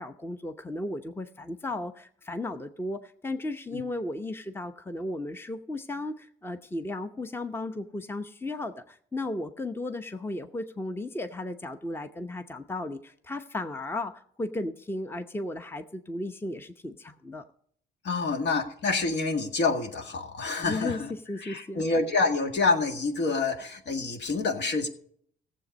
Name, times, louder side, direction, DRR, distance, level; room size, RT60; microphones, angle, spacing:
voice 1, 0.0-17.4 20.6-21.0 21.3-21.8, left 2 dB, 10° left, 9 dB, 0.8 m, -35 dB
voice 2, 18.0-21.1 21.4-24.9, left 3 dB, 60° left, 5 dB, 1.9 m, -27 dB
15.5 x 7.6 x 5.3 m, 0.63 s
cardioid pair, 90°, 20 cm